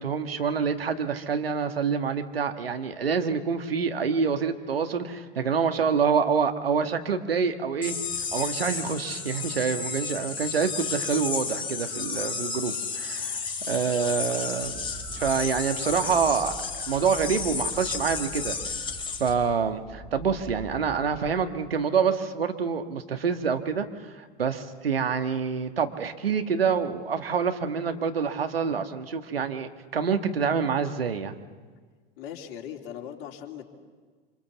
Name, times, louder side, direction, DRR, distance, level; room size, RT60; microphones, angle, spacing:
voice 1, 0.0-8.0 8.3-13.4 13.7-14.9 15.2-16.5 16.9-18.5 19.2-31.3, right 6 dB, 80° right, 7 dB, 1.7 m, -27 dB
sound 1, 7.8-19.3, left 5 dB, 15° left, 3.7 m, -32 dB
Wind, 14.6-21.7, right 2 dB, ahead, 2.9 m, -45 dB
voice 2, 32.2-33.7, left 9 dB, 50° left, 1 dB, 3.0 m, -39 dB
26.5 x 26.0 x 7.1 m, 1.5 s
figure-of-eight pair, 85°, 29 cm